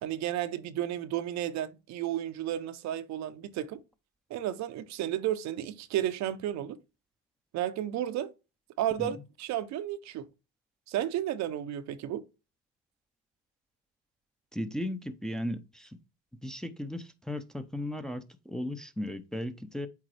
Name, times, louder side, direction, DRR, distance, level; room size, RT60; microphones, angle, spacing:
voice 1, 0.0-3.8 4.3-6.8 7.5-8.3 8.8-10.3 10.9-12.2, right 12 dB, 65° right, 0.7 m, -32 dB
voice 2, 14.5-16.0 16.4-19.9, left 1 dB, ahead, 0.7 m, -36 dB
8.4 x 3.7 x 3.3 m
supercardioid pair, 85°, 31 cm